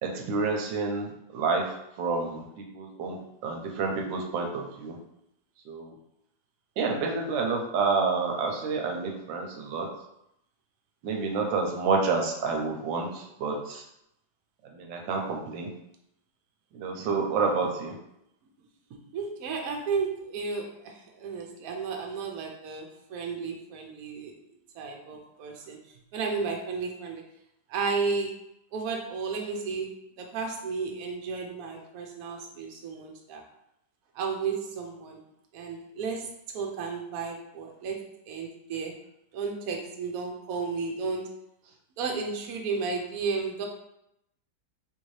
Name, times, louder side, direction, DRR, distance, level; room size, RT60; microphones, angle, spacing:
voice 1, 0.0-2.4 2.7-3.2 3.4-5.0 5.7-5.9 6.8-9.9 11.0-13.8 14.7-15.7 16.7-17.9, right 4 dB, 85° right, 1 dB, 1.3 m, -29 dB
voice 2, 18.9-24.3 24.7-25.8 26.1-27.2 27.7-28.4 28.7-33.4 34.1-35.2 35.5-36.3 36.5-38.9 39.3-41.3 42.0-43.7, right 5 dB, 65° right, 1 dB, 0.9 m, -33 dB
3.8 x 2.7 x 3.1 m, 0.80 s
omnidirectional pair, 2.0 m